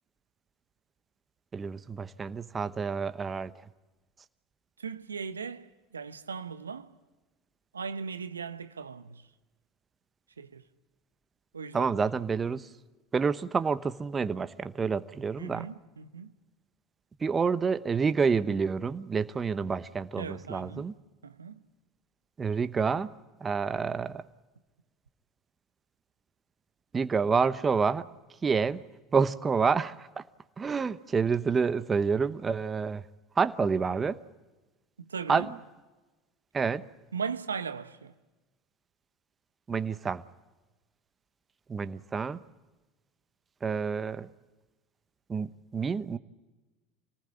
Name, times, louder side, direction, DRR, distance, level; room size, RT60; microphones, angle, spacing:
voice 1, 1.5-3.5 11.7-12.7 13.1-15.7 17.2-20.9 22.4-23.1 23.4-24.2 26.9-28.1 28.4-28.8 29.1-30.2 30.6-33.0 33.4-34.2 35.3-35.5 36.5-36.8 39.7-40.2 41.7-42.4 43.6-44.3 45.3-46.2, right 5 dB, 25° right, 1.0 m, -28 dB
voice 2, 4.8-6.9 7.7-9.3 10.4-10.6 11.5-12.0 15.4-16.3 20.2-20.9 21.2-21.6 35.0-35.5 37.1-38.1, right 6 dB, 85° right, 0.9 m, -38 dB
26.5 x 19.0 x 9.9 m
hypercardioid pair, 75°, 0 cm